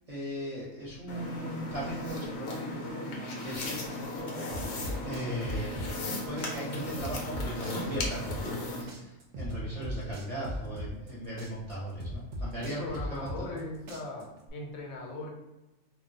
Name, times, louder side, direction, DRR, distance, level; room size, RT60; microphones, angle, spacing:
voice 1, 0.1-3.1 3.4-4.7 5.0-5.9 6.2-13.6, equal, 30° right, -7 dB, 0.8 m, -38 dB
sound 1, 1.1-8.8, left 2 dB, 65° left, 0.8 m, -36 dB
sound 2, 4.5-6.1 6.4-8.6 8.9-11.1 11.4-13.6 13.9-14.5, equal, 80° right, 0.4 m, -37 dB
voice 2, 12.6-15.3, left 2 dB, 85° left, 1 dB, 1.1 m, -39 dB
2.4 x 2.3 x 3.8 m, 1.0 s
omnidirectional pair, 1.4 m